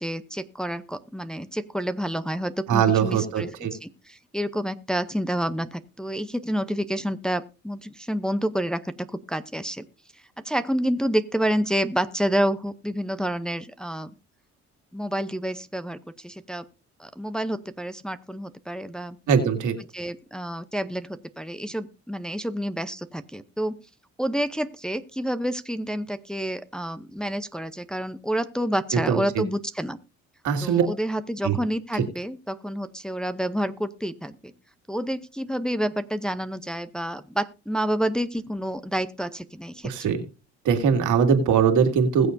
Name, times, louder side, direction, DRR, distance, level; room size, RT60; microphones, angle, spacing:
voice 1, 0.0-9.8 10.4-14.1 14.9-16.6 17.0-19.2 19.9-23.8 24.2-30.0 30.6-34.5 34.9-39.9, equal, 5° left, 10 dB, 0.7 m, -29 dB
voice 2, 2.7-3.7 19.3-19.7 29.1-29.2 30.4-30.9 31.4-31.6 39.8-40.2 40.6-42.3, right 7 dB, 80° right, 5 dB, 2.3 m, -21 dB
21.0 x 7.0 x 2.7 m, 0.31 s
cardioid pair, 90°, 30 cm